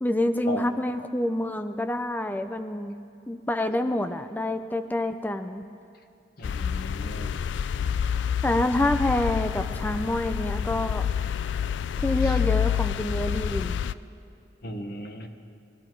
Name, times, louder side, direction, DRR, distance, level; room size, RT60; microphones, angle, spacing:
voice 1, 0.0-2.9 3.3-5.6 8.4-11.1 12.0-13.8, left 1 dB, 10° left, 9 dB, 0.4 m, -27 dB
sound 1, 6.4-13.9, left 8 dB, 80° left, 0.3 m, -28 dB
voice 2, 6.4-7.3 12.2-12.4 14.6-15.3, left 1 dB, 55° left, 6 dB, 1.0 m, -36 dB
20.5 x 12.5 x 4.6 m, 2.5 s
head